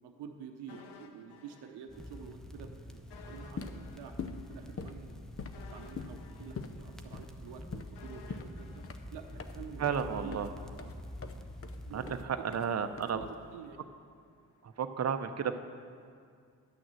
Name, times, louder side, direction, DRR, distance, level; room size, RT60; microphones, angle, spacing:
voice 1, 0.0-4.2 4.5-5.2 5.6-8.8 9.1-11.0 11.9-12.6 13.1-13.8, right 7 dB, 85° right, 4 dB, 0.8 m, -49 dB
sound 1, 0.7-2.3 2.6-2.7 3.1-10.2 10.5-10.6, left 5 dB, 80° left, 0.9 m, -56 dB
sound 2, 1.9-12.3, left 1 dB, ahead, 0.7 m, -47 dB
sound 3, 3.4-13.6, left 5 dB, 35° left, 0.7 m, -45 dB
voice 2, 9.8-10.5 11.2-11.4 11.9-13.2 14.6-15.6, right 7 dB, 40° right, 9 dB, 0.7 m, -33 dB
10.0 x 6.2 x 7.5 m, 2.3 s
supercardioid pair, 60°, 39 cm